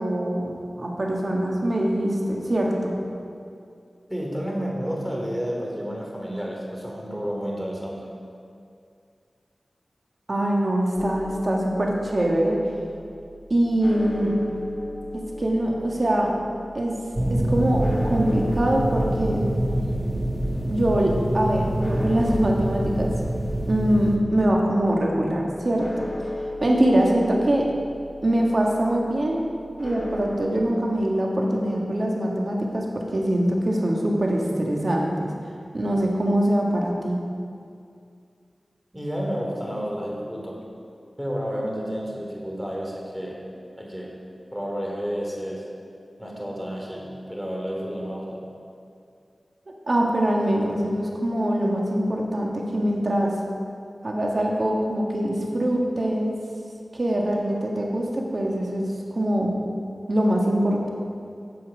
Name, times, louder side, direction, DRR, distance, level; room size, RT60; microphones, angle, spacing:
voice 1, 0.0-3.0 10.3-12.6 13.5-14.4 15.4-16.3 16.7-16.9 17.3-19.4 20.7-23.1 23.7-25.9 26.6-27.7 28.2-29.4 29.8-35.3 35.7-37.2 49.9-53.3 54.0-56.3 56.9-58.8 59.1-59.6 60.1-60.9, right 1 dB, 55° right, -1 dB, 1.8 m, -23 dB
voice 2, 4.1-8.1 38.9-40.7 41.2-43.5 43.8-44.2 44.5-45.7 46.2-48.4, equal, 5° right, -2 dB, 2.8 m, -31 dB
sound 1, 11.0-30.4, left 1 dB, 40° left, 2.3 m, -37 dB
sound 2, 17.1-24.2, right 1 dB, 30° right, 1.8 m, -26 dB
16.0 x 5.8 x 5.1 m, 2.4 s
cardioid pair, 40°, 0 cm